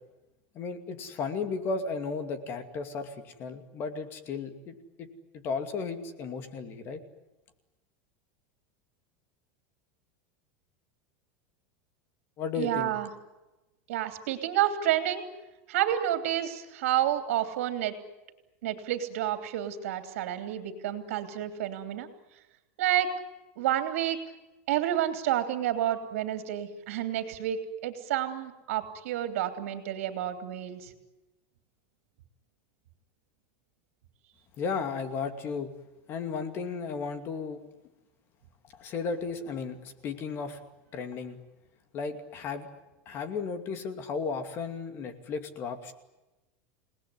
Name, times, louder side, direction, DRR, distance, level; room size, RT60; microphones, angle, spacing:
voice 1, 0.5-5.1 5.3-7.0 12.4-12.9 34.6-35.7 36.1-37.6 38.7-40.6 40.9-41.4 41.9-42.7 43.1-45.9, left 5 dB, 30° left, 9 dB, 2.5 m, -34 dB
voice 2, 12.6-13.1 13.9-15.2 15.7-17.9 18.6-22.1 22.8-23.1 23.6-24.2 24.7-30.9, right 11 dB, 75° right, 7 dB, 3.0 m, -29 dB
29.0 x 19.0 x 9.8 m, 1.0 s
supercardioid pair, 165°, 7 cm